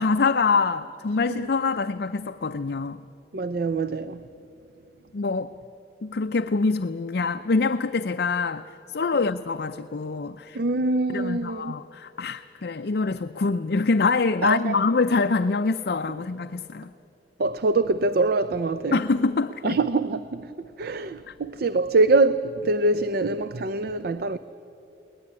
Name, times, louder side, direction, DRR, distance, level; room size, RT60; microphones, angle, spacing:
voice 1, 0.0-3.0 5.1-5.5 6.0-10.6 11.1-16.9 18.9-19.8, left 4 dB, 60° left, 0.5 m, -25 dB
voice 2, 3.3-4.3 9.1-9.2 10.5-11.7 14.4-14.7 17.4-19.0 19.6-24.4, right 3 dB, 60° right, 0.5 m, -24 dB
22.0 x 19.0 x 9.7 m
head